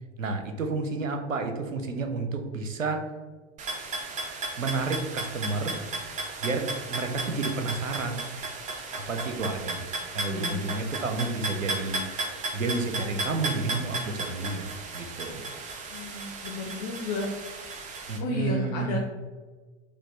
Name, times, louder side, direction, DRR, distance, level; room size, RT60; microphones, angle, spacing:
voice 1, 0.2-3.1 4.6-5.8 6.4-8.2 8.9-9.9 10.1-12.0 12.5-15.4 18.1-19.0, right 3 dB, 85° right, 5 dB, 0.6 m, -30 dB
sound 1, 3.6-18.2, right 2 dB, 20° right, 0.5 m, -35 dB
voice 2, 10.2-10.6 15.9-17.3 18.2-19.0, left 4 dB, 40° left, 0 dB, 0.5 m, -33 dB
4.1 x 2.5 x 3.2 m, 1.4 s
figure-of-eight pair, 80°, 38 cm